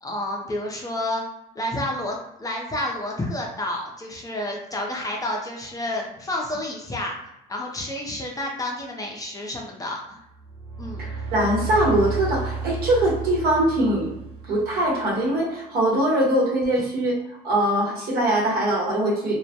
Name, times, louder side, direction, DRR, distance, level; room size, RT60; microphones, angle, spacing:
voice 1, 0.0-1.3 1.6-7.2 7.5-10.2 10.8-11.3 16.8-16.9, left 1 dB, 20° left, -1 dB, 0.5 m, -30 dB
sound 1, 10.4-15.0, right 4 dB, 85° right, 0.6 m, -32 dB
voice 2, 11.0-14.1 14.5-19.4, right 1 dB, 65° right, -4 dB, 1.0 m, -22 dB
2.2 x 2.0 x 2.8 m, 0.87 s
cardioid pair, 110°, 17 cm